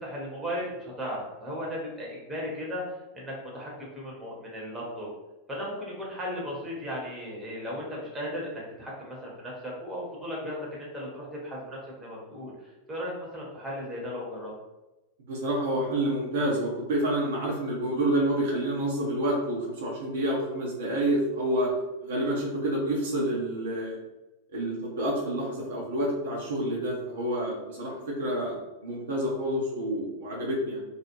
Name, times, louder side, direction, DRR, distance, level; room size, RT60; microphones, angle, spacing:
voice 1, 0.0-2.8 3.1-5.1 5.5-12.5 12.9-14.5 22.1-22.4, equal, 10° right, -4 dB, 0.8 m, -36 dB
voice 2, 15.3-21.7 22.0-24.0 24.5-30.8, right 1 dB, 60° right, -4 dB, 0.6 m, -28 dB
2.3 x 2.0 x 2.9 m, 1.0 s
figure-of-eight pair, 90°, 0 cm